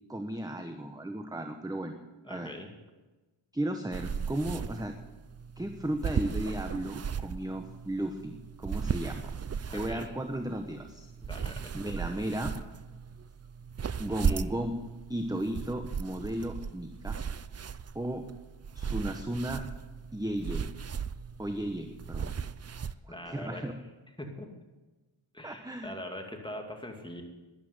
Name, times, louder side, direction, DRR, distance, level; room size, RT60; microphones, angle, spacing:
voice 1, 0.1-2.0 2.3-2.5 3.5-5.0 5.6-9.3 9.7-11.1 11.7-12.5 14.0-14.7 15.1-17.2 17.9-18.2 18.7-19.6 20.1-20.7 21.4-22.3 22.9-23.7 25.4-25.9, right 1 dB, 10° right, 6 dB, 1.0 m, -35 dB
voice 2, 2.2-2.7 9.7-10.1 11.2-11.7 14.1-14.4 23.1-23.6 24.2-24.5 25.3-27.2, left 1 dB, 10° left, 2 dB, 2.4 m, -42 dB
sound 1, 3.9-22.9, right 6 dB, 35° right, 0.5 m, -37 dB
12.5 x 11.0 x 8.0 m, 1.2 s
wide cardioid pair, 75°, 49 cm